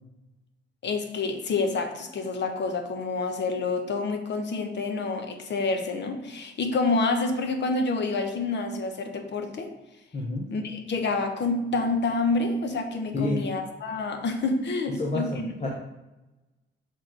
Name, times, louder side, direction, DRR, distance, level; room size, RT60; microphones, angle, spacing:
voice 1, 0.8-9.7 10.5-15.5, left 3 dB, 60° left, 6 dB, 1.0 m, -28 dB
voice 2, 10.1-10.5 13.1-13.4 14.9-15.7, left 2 dB, 35° left, -2 dB, 1.0 m, -29 dB
6.5 x 4.2 x 4.5 m, 1.0 s
cardioid pair, 95°, 20 cm